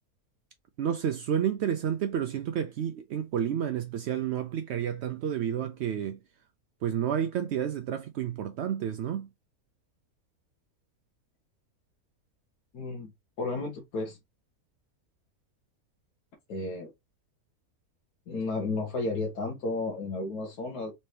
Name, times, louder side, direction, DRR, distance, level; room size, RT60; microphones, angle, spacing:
voice 1, 0.8-6.2 6.8-9.3, right 9 dB, 75° right, 0.6 m, -30 dB
voice 2, 12.7-13.1 13.4-14.2 16.5-16.9 18.3-20.9, left 3 dB, 85° left, 1.7 m, -32 dB
4.2 x 3.3 x 2.8 m
omnidirectional pair, 1.6 m